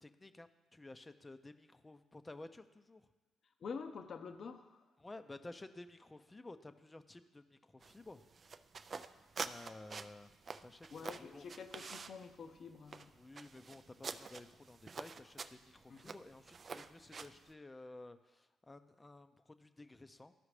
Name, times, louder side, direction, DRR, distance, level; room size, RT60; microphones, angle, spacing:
voice 1, 0.0-3.0 5.0-8.2 9.4-10.3 10.6-11.4 13.1-20.3, left 2 dB, 20° left, 10 dB, 0.6 m, -54 dB
voice 2, 3.6-4.9 10.9-13.1 15.9-16.2, left 5 dB, 55° left, 8 dB, 0.7 m, -48 dB
sound 1, 7.8-17.5, right 5 dB, 45° right, 0.4 m, -48 dB
13.0 x 4.9 x 3.2 m, 1.2 s
supercardioid pair, 60°, 0 cm